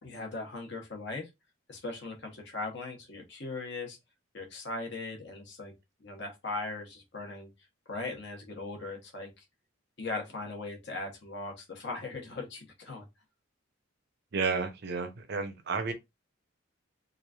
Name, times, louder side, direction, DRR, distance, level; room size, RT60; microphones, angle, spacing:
voice 1, 0.0-1.3 1.7-4.0 4.3-5.7 6.0-7.5 7.9-9.4 10.0-13.1, left 3 dB, 55° left, 0.9 m, -39 dB
voice 2, 14.3-15.9, right 4 dB, 50° right, 0.5 m, -31 dB
3.0 x 2.4 x 2.3 m
head